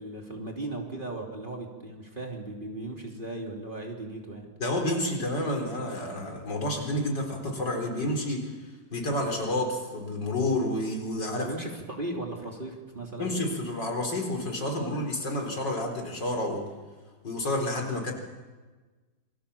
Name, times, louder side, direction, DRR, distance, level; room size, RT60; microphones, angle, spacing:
voice 1, 0.0-4.5 11.4-13.3, right 2 dB, 25° right, 0 dB, 3.3 m, -37 dB
voice 2, 4.6-8.6 8.9-11.5 13.2-16.7 17.2-18.1, left 1 dB, 70° left, 2 dB, 4.8 m, -29 dB
27.5 x 23.0 x 7.1 m, 1.3 s
omnidirectional pair, 2.0 m